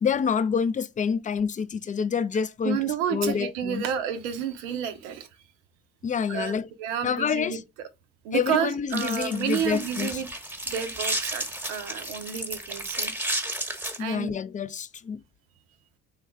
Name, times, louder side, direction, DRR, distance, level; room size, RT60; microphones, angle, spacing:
voice 1, 0.0-2.8 3.1-3.8 6.0-6.7 7.0-7.6 8.3-10.2 14.0-15.2, left 6 dB, 25° left, 0.3 m, -27 dB
voice 2, 2.6-5.3 6.3-7.6 8.2-10.3 10.7-13.1 14.0-14.3, right 9 dB, 90° right, 0.6 m, -30 dB
sound 1, 8.9-14.0, right 1 dB, 5° right, 1.0 m, -32 dB
3.4 x 2.3 x 3.3 m
hypercardioid pair, 50°, 35 cm